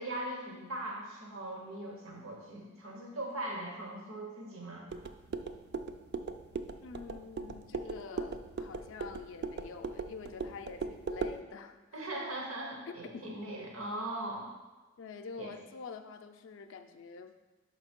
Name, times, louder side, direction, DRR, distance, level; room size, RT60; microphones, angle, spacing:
voice 1, 0.0-4.9 11.9-14.5 15.4-15.5, right 1 dB, 80° right, 0 dB, 1.1 m, -40 dB
sound 1, 4.9-11.4, right 4 dB, 55° right, 0.4 m, -39 dB
voice 2, 6.8-12.3 12.9-13.4 15.0-17.3, left 5 dB, 65° left, 7 dB, 0.4 m, -46 dB
5.6 x 5.0 x 4.4 m, 1.2 s
head